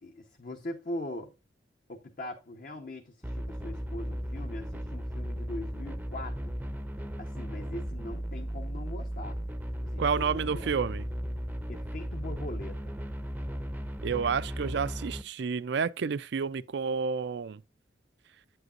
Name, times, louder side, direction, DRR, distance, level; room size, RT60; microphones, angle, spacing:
voice 1, 0.0-1.3 1.9-6.4 7.2-9.4 9.8-10.6 11.7-12.9, left 1 dB, 45° left, 0.9 m, -41 dB
sound 1, 3.2-15.2, equal, 10° right, 0.6 m, -36 dB
voice 2, 10.0-11.1 14.0-17.6, right 5 dB, 60° right, 0.4 m, -30 dB
9.0 x 7.9 x 2.5 m
head